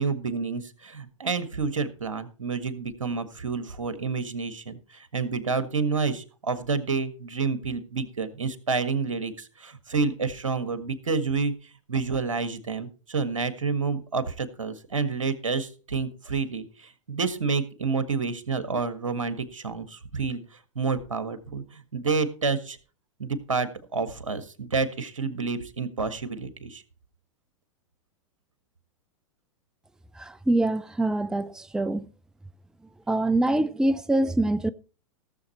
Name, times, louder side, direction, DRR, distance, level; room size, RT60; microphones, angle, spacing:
voice 1, 0.0-11.5 11.9-20.4 20.7-22.8 23.2-26.8, right 4 dB, 80° right, 1.7 m, -29 dB
voice 2, 30.2-32.1 33.1-34.7, right 2 dB, 5° right, 0.6 m, -24 dB
17.0 x 7.2 x 4.4 m
figure-of-eight pair, 95°, 16 cm